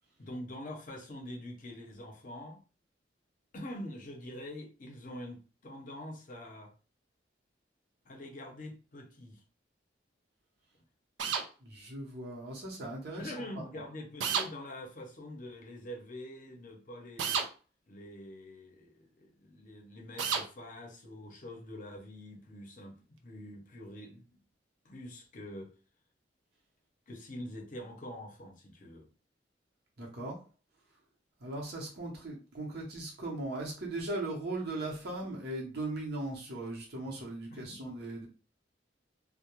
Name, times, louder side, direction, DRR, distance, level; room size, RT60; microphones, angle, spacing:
voice 1, 0.2-2.6 3.5-6.7 8.0-9.4 13.2-17.4 17.9-24.3 24.8-25.7 27.1-29.1 37.5-37.8, left 1 dB, 45° left, 0.6 m, -45 dB
sound 1, 11.2-11.5 14.2-14.5 17.2-17.5 20.2-20.5, right 7 dB, 85° right, 0.4 m, -30 dB
voice 2, 11.6-13.8 30.0-30.4 31.4-38.3, right 2 dB, 60° right, 0.8 m, -38 dB
2.3 x 2.1 x 2.9 m
head